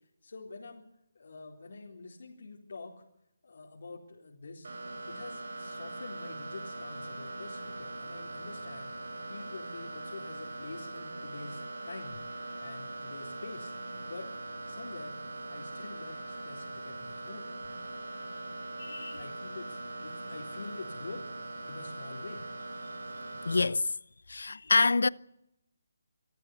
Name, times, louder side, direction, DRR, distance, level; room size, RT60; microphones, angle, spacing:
voice 1, 0.2-0.9 1.1-3.0 3.4-4.7 5.0-8.9 9.3-12.2 12.6-13.8 14.1-14.3 14.7-15.2 15.5-17.5 19.1-21.2 21.7-22.4, left 3 dB, 60° left, 4.1 m, -46 dB
sound 1, 4.6-23.6, right 2 dB, 70° right, 5.5 m, -41 dB
voice 2, 18.8-19.2 23.4-23.9 24.3-25.1, left 3 dB, 85° left, 0.8 m, -26 dB
25.5 x 14.0 x 9.6 m
hypercardioid pair, 165°, 0 cm